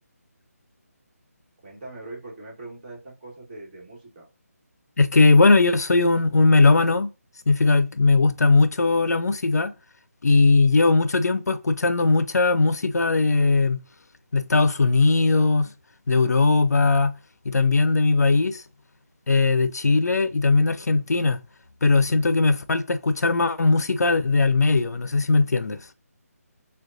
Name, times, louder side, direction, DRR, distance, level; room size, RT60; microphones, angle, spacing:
voice 1, 1.6-4.3, right 2 dB, 35° right, 1.4 m, -41 dB
voice 2, 5.0-7.1 7.5-9.7 10.2-13.8 14.3-15.7 16.1-17.1 17.5-18.6 19.3-21.4 21.8-25.9, left 3 dB, 85° left, 0.4 m, -19 dB
6.3 x 2.2 x 2.5 m
figure-of-eight pair, 160°, 9 cm